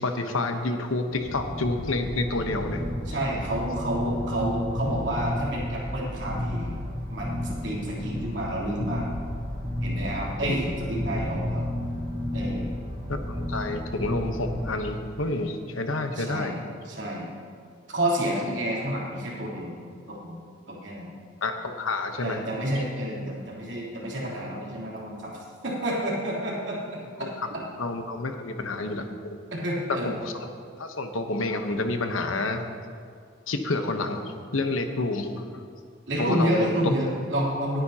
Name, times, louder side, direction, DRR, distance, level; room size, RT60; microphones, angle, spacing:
voice 1, 0.0-2.8 10.5-10.6 11.1-11.2 13.1-16.5 21.4-22.4 22.8-22.9 27.2-27.5 27.8-29.4 30.0-30.5 30.8-32.6 33.5-35.6 36.2-36.9, left 2 dB, 90° left, 6 dB, 1.0 m, -29 dB
sound 1, 1.1-14.8, left 1 dB, 40° right, 3.0 m, -32 dB
voice 2, 3.1-6.7 7.1-9.0 9.8-11.6 12.3-12.7 16.1-16.5 16.8-17.3 17.9-20.4 20.7-21.1 22.2-25.3 25.6-26.8 27.2-27.6 28.9-29.0 29.6-30.1 36.1-37.8, right 1 dB, 60° right, -6 dB, 3.3 m, -29 dB
19.5 x 9.5 x 2.9 m, 2.2 s
head